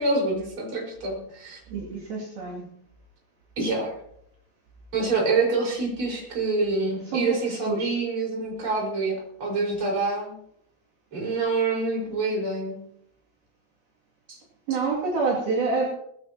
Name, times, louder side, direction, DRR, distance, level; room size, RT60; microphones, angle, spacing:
voice 1, 0.0-1.6 3.6-3.9 4.9-10.4 11.1-12.8, right 3 dB, 30° right, -2 dB, 5.6 m, -26 dB
voice 2, 1.7-2.7 7.1-8.0 14.7-15.9, right 4 dB, 65° right, -5 dB, 4.4 m, -27 dB
20.0 x 16.0 x 3.0 m, 0.72 s
omnidirectional pair, 4.9 m